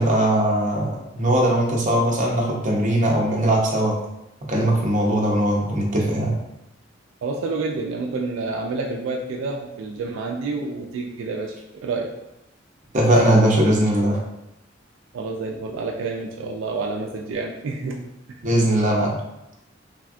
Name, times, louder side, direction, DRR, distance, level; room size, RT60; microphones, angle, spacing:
voice 1, 0.0-3.9 4.5-6.3 12.9-14.2 18.4-19.1, right 1 dB, 40° right, -3 dB, 0.7 m, -20 dB
voice 2, 7.2-11.5 11.8-12.1 15.1-18.0 18.3-18.4, right 3 dB, 85° right, 0 dB, 0.3 m, -28 dB
3.4 x 2.2 x 2.4 m, 0.88 s
head